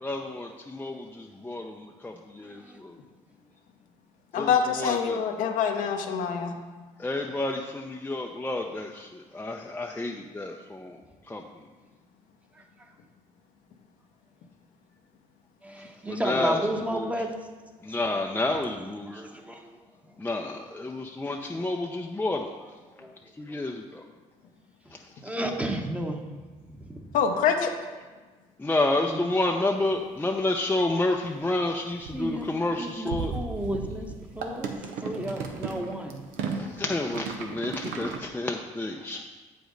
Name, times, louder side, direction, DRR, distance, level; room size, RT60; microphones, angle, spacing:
voice 1, 0.0-2.9 4.4-5.2 7.0-11.0 11.3-11.4 16.1-16.6 16.9-17.0 17.9-19.1 20.2-22.5 23.4-24.0 28.6-33.3 36.8-39.2, left 2 dB, 15° left, 1 dB, 0.5 m, -30 dB
voice 2, 2.4-2.8 12.5-12.9 15.6-17.4 19.0-19.8 22.9-23.1 23.5-23.6 25.2-27.1 28.1-28.2 29.0-29.3 32.1-32.5 32.8-36.2, right 1 dB, 10° right, 3 dB, 1.0 m, -33 dB
voice 3, 4.3-6.5 27.1-27.7, left 7 dB, 70° left, 4 dB, 0.7 m, -25 dB
sound 1, 29.7-29.8 30.4-30.5 30.7-31.0 31.2-31.4 31.8-38.2, right 4 dB, 80° right, 0.8 m, -35 dB
7.7 x 5.1 x 3.9 m, 1.3 s
supercardioid pair, 65°, 14 cm